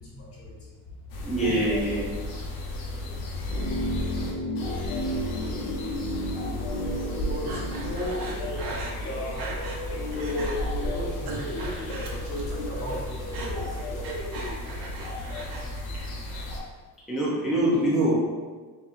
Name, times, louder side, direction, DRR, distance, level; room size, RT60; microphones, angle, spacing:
voice 1, 0.0-1.8 2.2-3.4 7.2-14.1 15.5-15.7, left 2 dB, 35° left, -4 dB, 1.1 m, -37 dB
sound 1, 1.1-16.6, left 1 dB, 80° left, 1.0 m, -33 dB
voice 2, 1.2-2.0 17.1-18.1, right 1 dB, ahead, -8 dB, 0.5 m, -24 dB
sound 2, 3.5-9.5 9.8-9.9, equal, 65° left, 0.6 m, -33 dB
Breathing, 7.5-9.8 10.1-10.6 11.0-12.6 12.8-15.7 15.9-16.6, right 2 dB, 70° right, 0.9 m, -39 dB
4.2 x 3.7 x 2.5 m, 1.4 s
cardioid pair, 165°, 38 cm